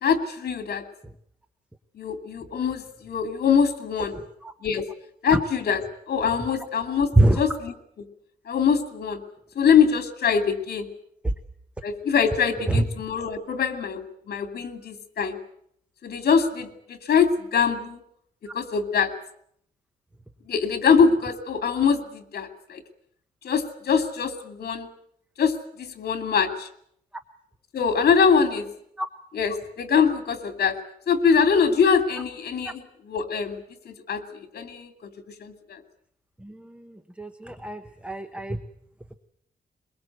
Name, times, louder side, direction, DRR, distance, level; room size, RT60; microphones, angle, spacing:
voice 1, 0.0-0.8 2.0-4.2 4.6-4.8 5.2-8.1 8.5-9.2 9.6-10.9 11.8-15.4 16.0-18.0 18.5-19.1 20.5-22.8 23.4-24.9 25.4-26.7 27.7-28.7 29.3-30.8 31.1-34.9 35.4-35.8, left 6 dB, 70° left, 7 dB, 2.5 m, -23 dB
voice 2, 37.2-38.6, right 2 dB, 5° right, 9 dB, 0.9 m, -22 dB
22.0 x 22.0 x 7.9 m, 0.69 s
wide cardioid pair, 170°, 17 cm